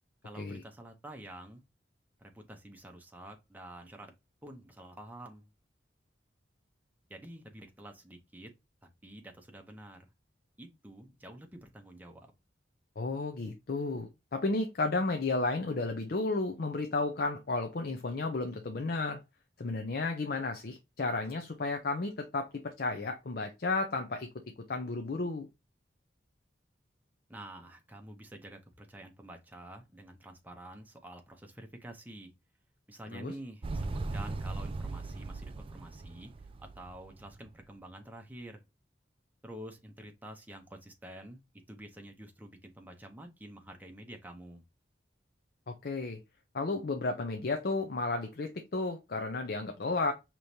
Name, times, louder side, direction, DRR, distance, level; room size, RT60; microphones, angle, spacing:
voice 1, 0.2-1.6 2.2-4.1 4.4-5.5 7.1-8.5 8.8-10.1 10.6-12.3 27.3-32.3 32.9-36.3 36.6-38.6 39.4-41.4 41.7-44.6, right 1 dB, 10° right, 0.7 m, -48 dB
voice 2, 13.0-19.2 19.6-24.3 24.7-25.5 33.1-33.3 45.7-46.2 46.5-50.1, left 3 dB, 55° left, 0.6 m, -33 dB
Motorcycle, 33.6-37.5, right 3 dB, 30° right, 0.3 m, -38 dB
4.9 x 3.0 x 2.7 m
head